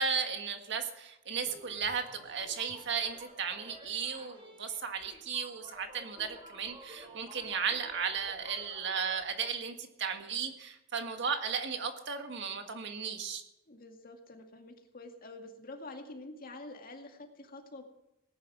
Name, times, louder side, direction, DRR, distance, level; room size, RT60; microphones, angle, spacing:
voice 1, 0.0-13.4, right 6 dB, 65° right, 6 dB, 1.7 m, -35 dB
sound 1, 1.4-9.5, right 1 dB, 30° right, 3.7 m, -52 dB
voice 2, 13.7-17.8, left 2 dB, 50° left, 3 dB, 2.2 m, -47 dB
18.5 x 10.5 x 6.2 m, 0.90 s
head